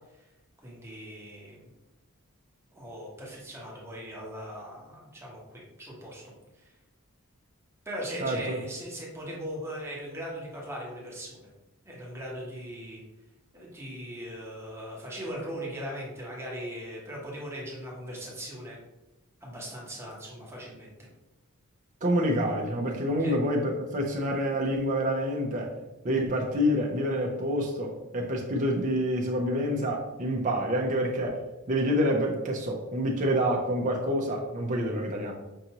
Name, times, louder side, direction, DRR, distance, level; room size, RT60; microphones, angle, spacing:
voice 1, 0.6-1.7 2.7-6.7 7.8-11.5 11.8-13.0 13.5-18.8 19.4-20.9 23.2-23.4, equal, 10° right, -4 dB, 1.1 m, -39 dB
voice 2, 8.2-8.6 22.0-25.7 26.0-31.4 31.7-35.3, equal, 35° right, -1 dB, 0.6 m, -27 dB
5.5 x 2.6 x 2.9 m, 0.98 s
head